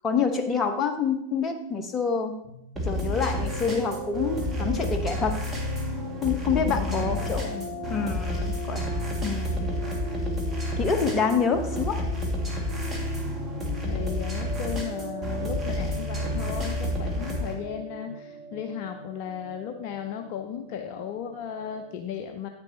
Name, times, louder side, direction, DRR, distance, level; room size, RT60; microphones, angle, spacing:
voice 1, 0.0-2.4 2.9-5.3 6.2-7.4 7.9-8.8 9.2-9.7 10.8-12.0, left 5 dB, 20° left, 6 dB, 1.0 m, -27 dB
sound 1, 2.4-21.9, right 2 dB, 75° right, 1.7 m, -39 dB
sound 2, 2.7-17.5, left 1 dB, 10° right, 2.0 m, -30 dB
voice 2, 6.7-7.7 13.8-22.5, left 8 dB, 45° left, 5 dB, 0.6 m, -36 dB
9.6 x 9.3 x 2.8 m, 0.81 s
figure-of-eight pair, 90°, 0 cm